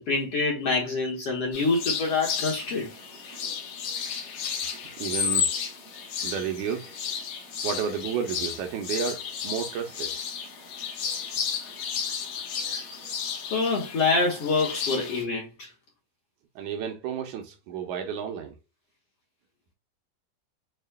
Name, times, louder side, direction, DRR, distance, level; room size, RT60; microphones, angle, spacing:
voice 1, 0.1-2.9 13.5-15.7, left 3 dB, 55° left, 1.9 m, -26 dB
sound 1, 1.5-15.2, left 7 dB, 85° left, 2.9 m, -33 dB
voice 2, 4.7-5.5 6.2-6.9 7.6-10.2 16.6-18.5, right 7 dB, 75° right, 2.1 m, -32 dB
6.5 x 2.4 x 2.2 m
omnidirectional pair, 3.7 m